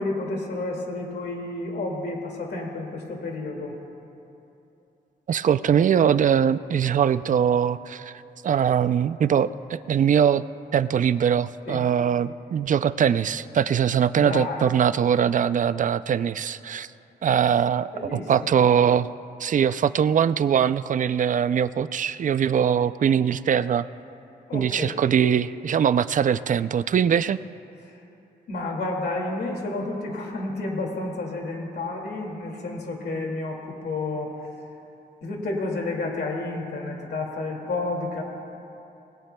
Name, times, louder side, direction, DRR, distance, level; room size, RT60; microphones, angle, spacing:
voice 1, 0.0-3.7 11.7-11.8 14.2-14.8 17.9-18.5 24.5-25.0 27.8-28.0 28.5-34.3 35.2-38.2, left 2 dB, 75° left, 0 dB, 2.3 m, -30 dB
voice 2, 5.3-10.4 10.7-16.9 17.2-19.1 19.4-23.8 24.5-27.4, right 8 dB, 50° right, 14 dB, 0.4 m, -22 dB
26.5 x 20.0 x 2.3 m, 2.8 s
wide cardioid pair, 110°, 17 cm